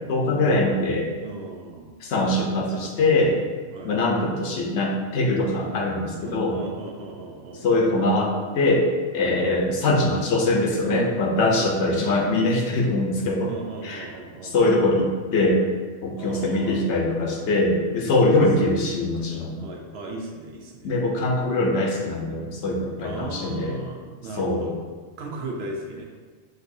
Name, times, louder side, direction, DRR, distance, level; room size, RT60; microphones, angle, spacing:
voice 1, 0.1-1.1 2.0-3.4 3.8-6.6 7.6-8.9 9.1-13.5 13.8-14.1 14.4-15.6 16.0-19.6 20.8-23.8 24.4-24.7, left 2 dB, 70° left, 0 dB, 1.0 m, -22 dB
voice 2, 1.2-2.0 3.7-4.0 5.6-5.7 6.2-7.6 9.2-9.4 11.5-11.7 13.5-14.5 16.2-16.9 19.6-20.9 23.0-24.7 25.2-26.1, right 2 dB, 65° right, 0 dB, 0.8 m, -36 dB
6.4 x 2.6 x 2.6 m, 1.5 s
omnidirectional pair, 1.2 m